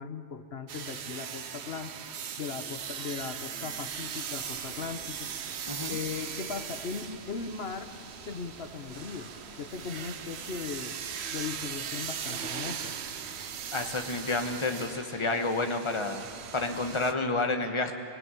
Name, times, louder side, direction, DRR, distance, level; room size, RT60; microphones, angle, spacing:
voice 1, 0.0-1.9 2.4-5.3 5.9-7.9 8.3-9.3 9.6-11.0 11.3-13.0, left 5 dB, 75° left, 8 dB, 1.3 m, -38 dB
sound 1, 0.7-17.1, right 8 dB, 85° right, 1.1 m, -39 dB
sound 2, 4.4-14.4, equal, 55° left, 8.3 m, -54 dB
voice 2, 5.7-6.0 13.7-16.2 16.5-17.9, left 3 dB, 30° left, 5 dB, 1.4 m, -30 dB
25.0 x 18.0 x 9.1 m, 2.5 s
omnidirectional pair, 1.1 m